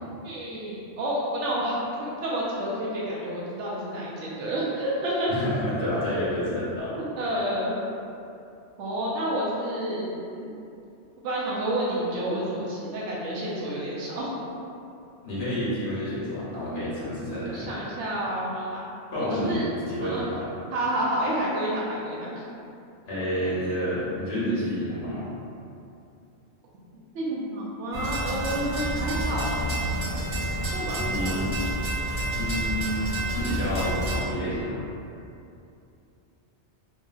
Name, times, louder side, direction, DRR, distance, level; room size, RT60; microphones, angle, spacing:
voice 1, 0.2-5.3 6.1-6.2 6.9-7.7 8.8-10.5 11.2-14.4 17.5-18.8 19.2-19.7 20.0-20.2 20.7-22.5 27.1-29.6 30.7-31.4, right 1 dB, 85° right, -5 dB, 0.9 m, -29 dB
voice 2, 5.3-6.9 15.2-17.7 19.1-20.5 23.1-25.3 31.0-31.5 32.4-33.0 33.3-34.8, equal, 50° left, -10 dB, 1.0 m, -29 dB
sound 1, 27.9-34.2, right 1 dB, 30° right, 0.4 m, -29 dB
3.0 x 2.6 x 2.3 m, 2.7 s
omnidirectional pair, 1.2 m